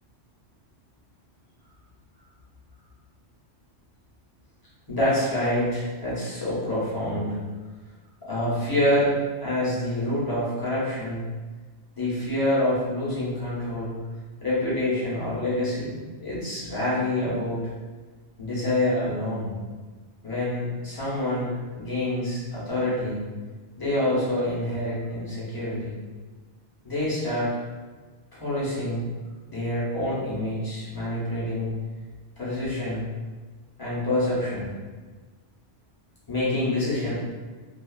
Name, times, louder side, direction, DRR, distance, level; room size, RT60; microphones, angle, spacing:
voice 1, 4.9-7.4 8.3-9.1 9.4-11.2 11.9-14.0 14.4-17.6 18.4-19.5 20.2-23.3 23.8-26.0 26.8-27.5 28.3-29.0 29.5-31.7 32.4-33.1 33.8-34.7 36.3-37.1, left 1 dB, 20° left, -9 dB, 0.8 m, -27 dB
2.5 x 2.4 x 2.3 m, 1.4 s
omnidirectional pair, 1.2 m